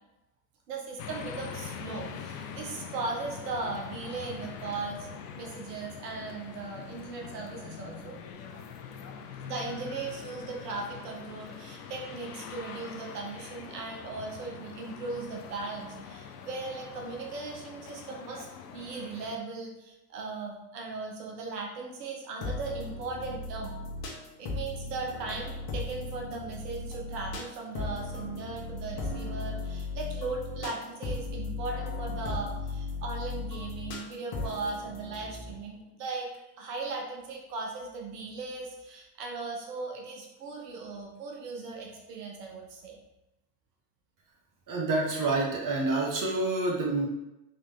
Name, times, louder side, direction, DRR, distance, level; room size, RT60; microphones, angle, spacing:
voice 1, 0.7-5.1 5.4-8.2 9.2-18.5 18.7-23.8 24.4-43.0, right 3 dB, 90° right, 0 dB, 0.9 m, -38 dB
sound 1, 1.0-19.4, left 7 dB, 90° left, 0.6 m, -43 dB
sound 2, 22.4-35.5, left 3 dB, 50° left, 1.3 m, -37 dB
voice 2, 44.7-47.1, right 2 dB, 40° right, -2 dB, 1.3 m, -28 dB
3.8 x 3.3 x 3.6 m, 0.95 s
hypercardioid pair, 65°, 46 cm